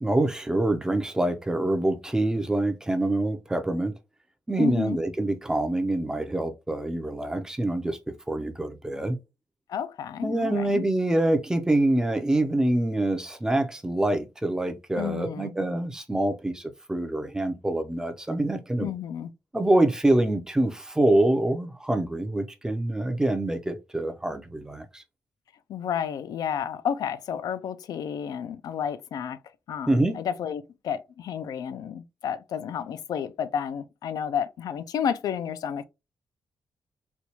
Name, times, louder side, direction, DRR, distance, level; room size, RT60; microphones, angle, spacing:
voice 1, 0.0-3.9 4.5-8.0 8.3-9.2 10.2-18.9 19.5-25.0 29.9-30.2, right 1 dB, 10° right, 0.5 m, -25 dB
voice 2, 4.6-5.0 9.7-10.8 15.0-15.5 18.8-19.3 25.7-29.4 29.7-35.9, left 8 dB, 75° left, 0.4 m, -31 dB
4.3 x 2.3 x 2.8 m
wide cardioid pair, 140°, 7 cm